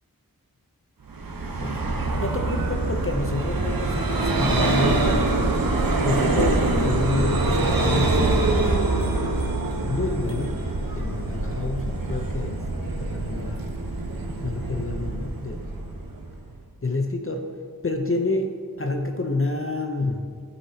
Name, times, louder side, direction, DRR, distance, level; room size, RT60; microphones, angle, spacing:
Vehicle, 1.1-16.5, right 2 dB, 70° right, 1.0 m, -24 dB
voice 1, 1.6-9.3 9.8-10.6 10.9-12.7 13.0-13.7 14.4-15.7 16.8-20.3, left 3 dB, 35° left, 3 dB, 0.7 m, -29 dB
14.5 x 5.5 x 2.9 m, 2.2 s
wide cardioid pair, 55°, 36 cm